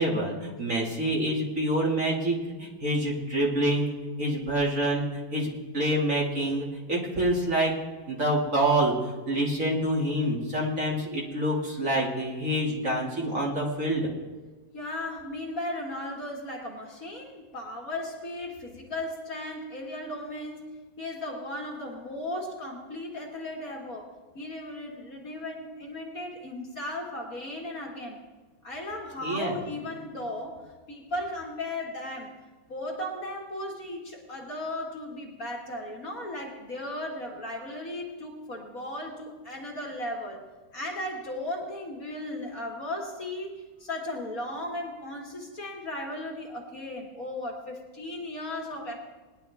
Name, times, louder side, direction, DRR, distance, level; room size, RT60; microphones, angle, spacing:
voice 1, 0.0-5.5 5.7-7.7 8.1-14.1 29.2-29.5, right 1 dB, 40° right, -4 dB, 2.6 m, -27 dB
voice 2, 14.7-24.1 24.3-28.2 28.6-30.6 30.9-32.3 32.7-40.4 40.7-49.0, left 1 dB, 45° left, -1 dB, 2.1 m, -36 dB
20.0 x 11.0 x 3.5 m, 1.3 s
omnidirectional pair, 2.2 m